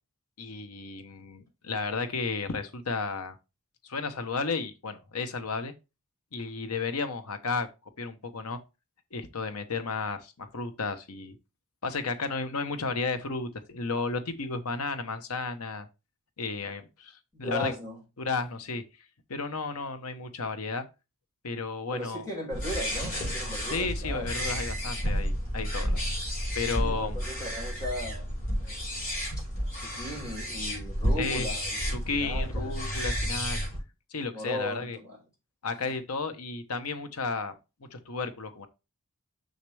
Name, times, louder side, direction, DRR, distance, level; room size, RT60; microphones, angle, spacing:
voice 1, 0.4-3.4 3.8-5.7 6.3-7.7 8.0-8.6 9.1-11.4 11.8-15.9 16.4-17.7 18.2-18.8 19.3-20.8 21.4-22.2 23.7-26.0 26.5-27.2 31.2-31.5 31.9-33.6 34.1-35.0 35.6-37.5 37.9-38.7, left 4 dB, 85° left, 1.0 m, -33 dB
voice 2, 17.3-18.0 21.9-24.2 26.8-28.3 28.6-28.8 29.8-32.8 34.3-35.2 35.8-35.9, left 1 dB, 15° left, 4.9 m, -37 dB
sound 1, 22.5-33.8, equal, 40° left, 4.5 m, -31 dB
6.5 x 6.5 x 3.3 m
head